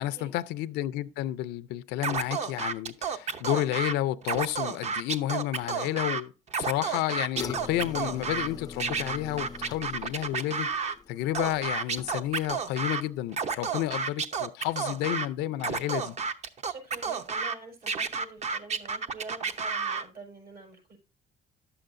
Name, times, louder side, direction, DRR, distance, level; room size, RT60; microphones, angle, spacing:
voice 1, 0.0-16.2, left 14 dB, 90° left, 0.5 m, -31 dB
Scratching (performance technique), 2.0-3.9 4.2-6.2 6.5-8.5 8.8-10.9 11.3-13.0 13.3-15.3 15.6-17.5 17.9-20.0, right 5 dB, 40° right, 0.8 m, -31 dB
sound 1, 7.4-12.6 12.9-13.3 13.7-13.8, left 5 dB, 25° left, 0.4 m, -43 dB
voice 2, 15.4-15.8 16.5-21.0, right 3 dB, 65° right, 5.7 m, -47 dB
11.0 x 7.8 x 2.5 m
cardioid pair, 110°, 17 cm